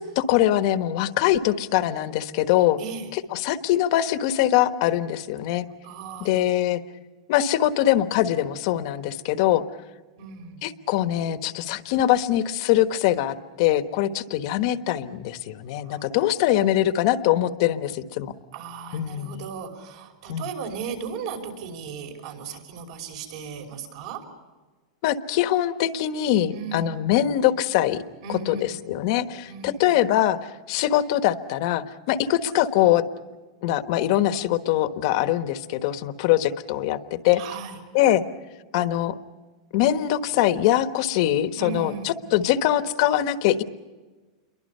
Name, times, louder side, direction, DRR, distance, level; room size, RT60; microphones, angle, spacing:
voice 1, 0.0-2.8 3.1-5.7 6.2-6.8 7.3-9.6 10.6-18.3 18.9-19.4 20.3-20.4 25.0-28.0 28.5-33.0 33.6-37.4 37.9-38.2 38.7-39.1 39.7-43.6, left 12 dB, 45° left, 10 dB, 1.2 m, -23 dB
voice 2, 2.8-3.1 5.8-6.5 10.2-10.7 15.8-16.1 18.5-24.3 26.5-27.0 28.2-28.8 29.4-29.9 37.3-37.8 41.6-42.1, right 5 dB, 55° right, 3 dB, 5.5 m, -36 dB
29.0 x 23.0 x 5.6 m, 1.3 s
supercardioid pair, 165°, 4 cm